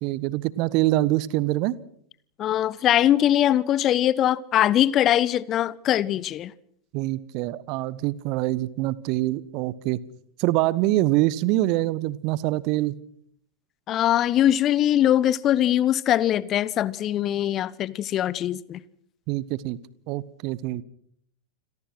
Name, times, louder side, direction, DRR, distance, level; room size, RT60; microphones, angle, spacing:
voice 1, 0.0-1.8 6.9-10.0 10.4-13.0 19.3-19.8 20.1-20.8, right 17 dB, 40° right, 1.2 m, -25 dB
voice 2, 2.4-6.5 13.9-18.8, left 11 dB, 30° left, 0.9 m, -22 dB
29.0 x 22.0 x 6.1 m
figure-of-eight pair, 90°, 0 cm